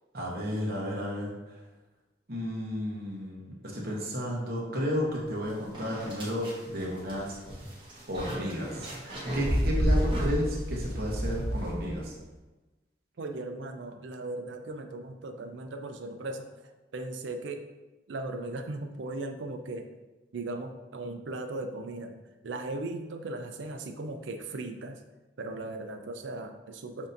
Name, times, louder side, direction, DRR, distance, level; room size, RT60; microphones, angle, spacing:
voice 1, 0.1-1.6 2.3-7.4 8.1-12.1, equal, 55° right, -4 dB, 1.0 m, -32 dB
sound 1, 5.2-5.3 5.7-12.1, equal, 25° right, 1.2 m, -31 dB
voice 2, 13.2-16.5 16.9-17.6 18.1-19.9 20.3-22.2 22.4-25.0 25.4-27.1, right 2 dB, 80° right, 6 dB, 0.5 m, -37 dB
7.2 x 2.7 x 2.6 m, 1.1 s
head